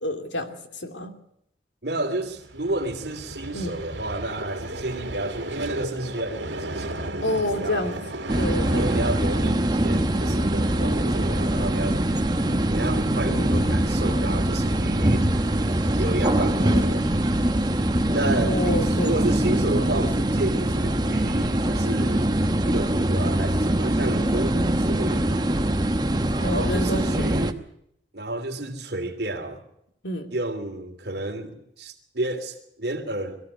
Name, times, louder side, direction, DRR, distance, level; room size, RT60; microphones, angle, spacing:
voice 1, 0.0-1.1 3.5-3.7 7.2-7.9 8.3-8.8 13.3-13.5 18.4-19.1 26.4-27.3 30.0-30.3, left 1 dB, 85° left, 2.7 m, -28 dB
voice 2, 1.8-7.9 8.7-12.0 12.7-15.3 16.0-17.1 18.1-22.3 22.6-25.4 26.4-27.6 28.1-29.6 30.3-33.5, right 2 dB, 65° right, 3.0 m, -31 dB
Vehicle, 2.2-18.6, right 1 dB, 85° right, 2.4 m, -37 dB
sound 1, 8.3-27.5, right 1 dB, 25° right, 1.0 m, -23 dB
22.0 x 15.0 x 8.1 m
head